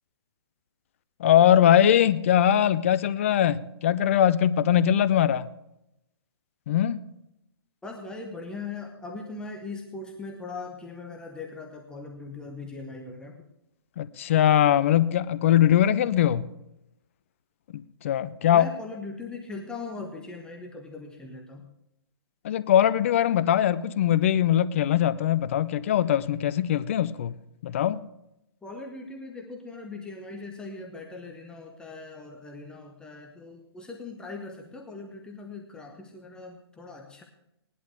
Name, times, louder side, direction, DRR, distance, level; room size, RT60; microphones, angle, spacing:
voice 1, 1.2-5.5 6.7-7.0 14.0-16.5 18.0-18.7 22.4-27.3 27.6-28.0, left 10 dB, 30° left, 17 dB, 0.4 m, -21 dB
voice 2, 7.8-13.4 18.5-21.7 28.6-37.2, left 3 dB, 5° left, 2 dB, 0.9 m, -40 dB
18.5 x 11.0 x 3.4 m, 0.84 s
figure-of-eight pair, 130°, 13 cm